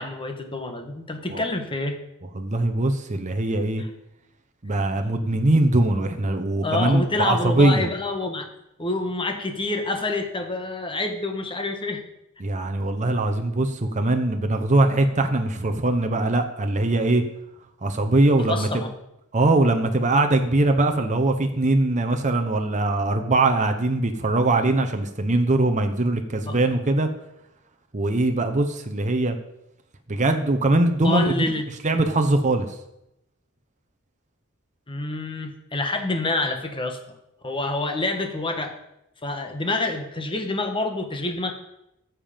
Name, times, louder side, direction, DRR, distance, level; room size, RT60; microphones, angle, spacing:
voice 1, 0.0-2.0 3.8-3.9 6.6-8.5 8.8-12.0 18.5-18.9 26.5-26.6 31.0-31.7 34.9-37.0 37.4-38.7 39.2-41.5, left 2 dB, 25° left, 5 dB, 1.4 m, -27 dB
voice 2, 2.4-3.8 4.6-7.9 12.4-17.2 17.8-18.8 19.3-27.1 27.9-29.4 30.1-31.3 31.8-32.7, right 2 dB, 35° right, 6 dB, 0.9 m, -21 dB
14.0 x 7.5 x 5.2 m, 0.83 s
head